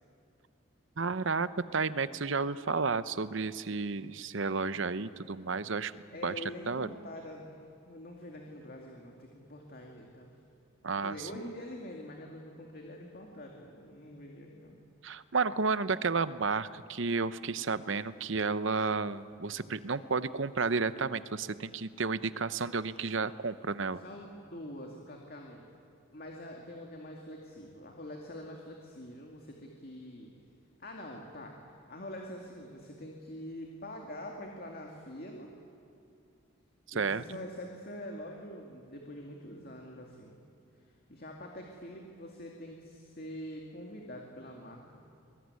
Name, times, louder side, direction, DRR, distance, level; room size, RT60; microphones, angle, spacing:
voice 1, 1.0-5.9 6.2-6.3 6.7-6.9 10.8-11.1 15.0-24.0 36.9-37.2, right 4 dB, 60° right, 14 dB, 0.8 m, -32 dB
voice 2, 6.1-7.6 7.9-10.3 11.0-14.8 23.9-25.6 26.1-30.3 30.8-35.5 36.9-40.4 40.7-45.0, left 1 dB, 45° left, 1 dB, 2.3 m, -45 dB
25.0 x 21.5 x 9.6 m, 2.5 s
head